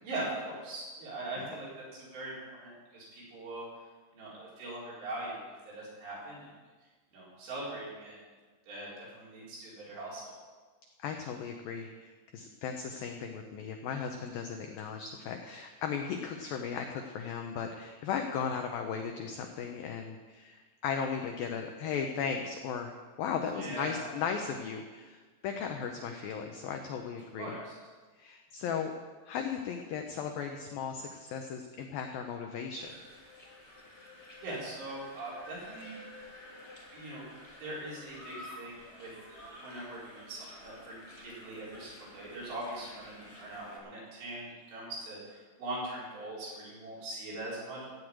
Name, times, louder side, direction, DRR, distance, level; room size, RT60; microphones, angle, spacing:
voice 1, 0.0-3.7 4.1-5.4 5.6-6.5 7.1-8.2 8.7-10.2 23.5-24.1 27.4-27.7 34.4-35.9 36.9-37.3 37.6-47.9, right 1 dB, 65° right, -7 dB, 6.7 m, -41 dB
voice 2, 11.0-27.6 28.2-28.9 29.3-32.9, left 6 dB, 85° left, 4 dB, 2.0 m, -36 dB
sound 1, 32.8-43.8, left 1 dB, 20° left, 2.5 m, -51 dB
16.0 x 6.3 x 8.7 m, 1.4 s
omnidirectional pair, 5.3 m